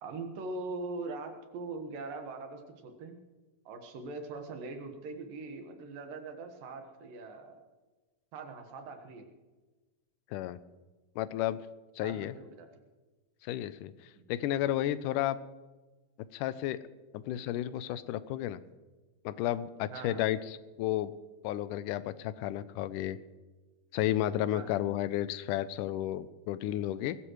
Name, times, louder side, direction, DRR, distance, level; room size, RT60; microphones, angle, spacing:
voice 1, 0.0-3.2 3.7-7.6 8.3-9.2 12.0-12.7 14.1-14.2 19.9-20.3 24.5-24.8, right 3 dB, 80° right, 5 dB, 3.2 m, -42 dB
voice 2, 11.2-11.6 12.0-12.3 13.4-13.9 14.3-15.4 16.3-16.8 17.1-18.6 19.3-21.1 21.4-23.2 23.9-27.2, left 13 dB, 80° left, 15 dB, 2.0 m, -32 dB
21.0 x 14.5 x 3.1 m, 1.2 s
omnidirectional pair, 3.9 m